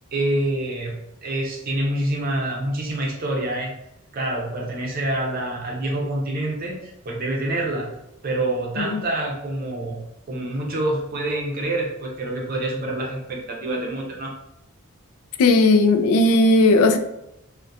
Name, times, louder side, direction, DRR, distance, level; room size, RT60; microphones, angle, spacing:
voice 1, 0.1-0.9 1.2-3.7 4.1-7.9 8.2-10.0 10.3-14.3, right 1 dB, 40° right, -1 dB, 0.5 m, -26 dB
voice 2, 15.4-17.0, left 2 dB, 80° left, 10 dB, 0.3 m, -16 dB
2.3 x 2.1 x 2.6 m, 0.84 s
head